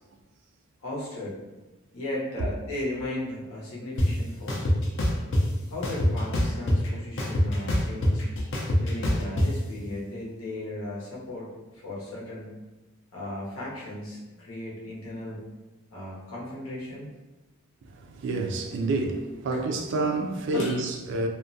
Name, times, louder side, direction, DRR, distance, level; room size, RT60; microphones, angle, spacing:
voice 1, 0.8-1.4 1.9-4.7 5.7-8.2 8.8-12.6 13.1-15.5 15.9-17.1 19.5-19.6 20.5-20.8, left 1 dB, 80° left, 0.8 m, -36 dB
sound 1, 4.0-4.1 4.5-5.4 5.8-6.9 7.2-9.5, left 1 dB, 60° left, 0.4 m, -23 dB
voice 2, 17.9-21.3, right 3 dB, 60° right, 0.3 m, -28 dB
2.3 x 2.1 x 2.5 m
head